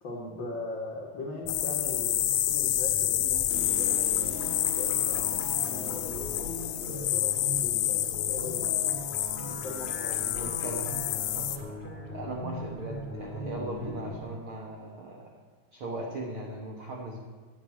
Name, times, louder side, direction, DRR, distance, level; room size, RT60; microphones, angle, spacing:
voice 1, 0.0-9.0 9.5-10.5, left 2 dB, 60° left, -2 dB, 1.2 m, -40 dB
sound 1, 1.4-14.2, equal, 35° left, 1.0 m, -40 dB
sound 2, 1.5-11.6, left 13 dB, 80° left, 2.3 m, -29 dB
voice 2, 10.3-11.7 12.1-15.3 15.7-17.2, right 1 dB, 65° right, -1 dB, 1.3 m, -38 dB
11.5 x 7.2 x 8.4 m, 1.4 s
omnidirectional pair, 4.4 m